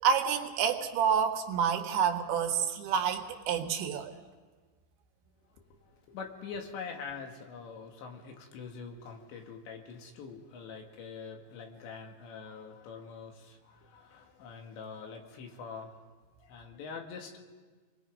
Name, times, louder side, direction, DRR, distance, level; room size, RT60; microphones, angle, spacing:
voice 1, 0.0-4.1, right 7 dB, 80° right, 4 dB, 3.7 m, -28 dB
voice 2, 5.5-16.0 16.4-17.4, left 5 dB, 80° left, 2 dB, 4.2 m, -44 dB
29.0 x 21.5 x 5.2 m, 1.4 s
omnidirectional pair, 5.1 m